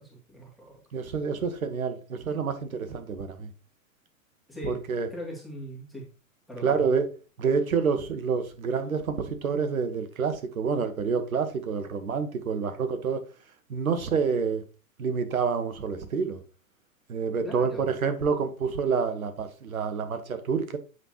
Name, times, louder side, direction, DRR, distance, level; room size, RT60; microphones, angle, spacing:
voice 1, 0.0-0.8 4.5-4.8 5.1-6.1 6.5-6.8 17.4-17.9, left 1 dB, ahead, 2.6 m, -40 dB
voice 2, 0.9-3.5 4.6-5.1 6.6-7.0 7.4-13.2 13.7-14.6 15.0-16.4 17.1-20.8, right 5 dB, 80° right, 1.4 m, -28 dB
8.1 x 5.4 x 3.0 m
hypercardioid pair, 110°, 42 cm